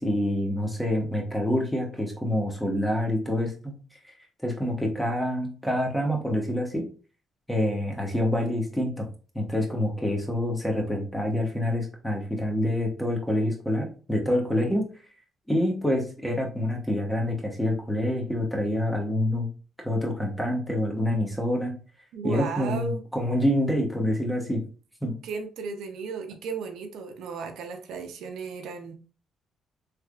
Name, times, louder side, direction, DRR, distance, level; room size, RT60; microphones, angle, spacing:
voice 1, 0.0-3.7 4.4-6.8 7.5-9.1 9.3-14.9 15.5-19.5 19.8-21.7 22.2-24.6 25.0-25.1, left 1 dB, 5° left, 1 dB, 1.2 m, -27 dB
voice 2, 22.1-23.0 25.2-28.9, right 5 dB, 80° right, 5 dB, 0.6 m, -35 dB
3.4 x 3.3 x 2.4 m, 0.37 s
cardioid pair, 90°, 0 cm